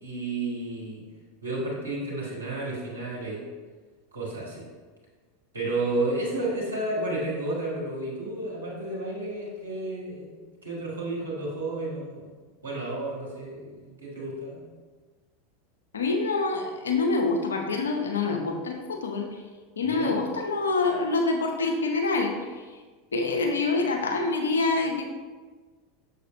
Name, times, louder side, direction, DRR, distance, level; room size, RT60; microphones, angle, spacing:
voice 1, 0.0-1.0 1.4-3.4 4.1-4.7 5.5-10.3 10.6-12.3 12.6-14.6 19.8-20.2, right 2 dB, 85° right, -5 dB, 2.0 m, -32 dB
voice 2, 15.9-19.3 19.8-22.3 23.1-25.0, left 3 dB, 80° left, 3 dB, 0.8 m, -26 dB
6.8 x 6.6 x 2.6 m, 1.4 s
figure-of-eight pair, 85°, 0 cm